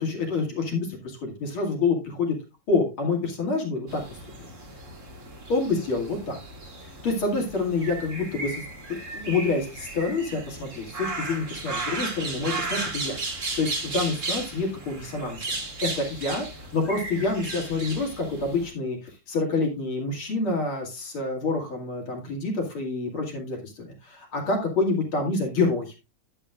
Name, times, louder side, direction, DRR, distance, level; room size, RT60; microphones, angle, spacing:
voice 1, 0.0-2.4 2.7-4.2 5.5-6.4 6.8-8.6 8.9-13.2 13.6-15.5 15.8-19.0 19.3-25.9, left 3 dB, 90° left, 0 dB, 3.3 m, -27 dB
sound 1, 3.9-18.7, right 3 dB, 40° right, 2.2 m, -35 dB
11.0 x 8.7 x 2.5 m, 0.27 s
omnidirectional pair, 2.2 m